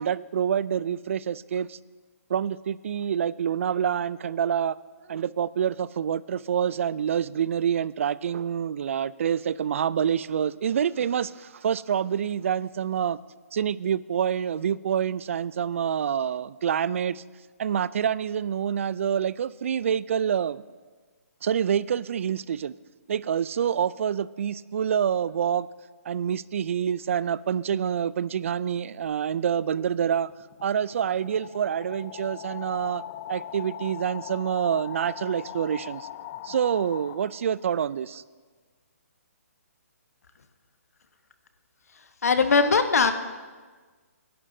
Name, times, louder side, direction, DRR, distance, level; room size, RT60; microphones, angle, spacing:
voice 1, 0.0-1.8 2.3-4.8 5.1-13.2 13.5-17.2 17.6-20.6 21.4-22.7 23.1-25.7 26.1-30.3 30.6-33.0 33.3-36.1 36.4-38.2, right 8 dB, 55° right, 20 dB, 0.4 m, -27 dB
sound 1, 29.9-37.7, left 11 dB, 25° left, 0.4 m, -41 dB
voice 2, 42.2-43.1, left 4 dB, 75° left, 9 dB, 1.1 m, -20 dB
23.5 x 11.0 x 2.7 m, 1.4 s
hypercardioid pair, 150°, 8 cm